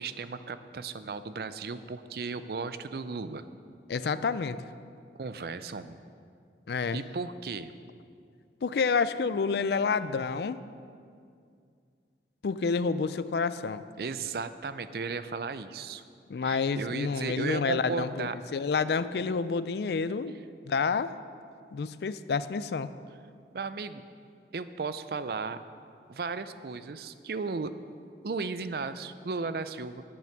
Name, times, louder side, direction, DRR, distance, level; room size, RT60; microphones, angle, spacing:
voice 1, 0.0-3.4 5.1-6.0 6.9-7.7 14.0-16.0 16.4-18.3 23.5-24.0 24.5-25.6 26.1-27.7 28.2-30.0, right 4 dB, 60° right, 12 dB, 0.4 m, -35 dB
voice 2, 3.9-4.6 6.7-7.0 8.6-10.6 12.4-13.8 16.3-20.3 20.6-21.1 21.7-22.9, left 5 dB, 65° left, 14 dB, 0.4 m, -29 dB
10.5 x 8.5 x 5.9 m, 2.3 s
head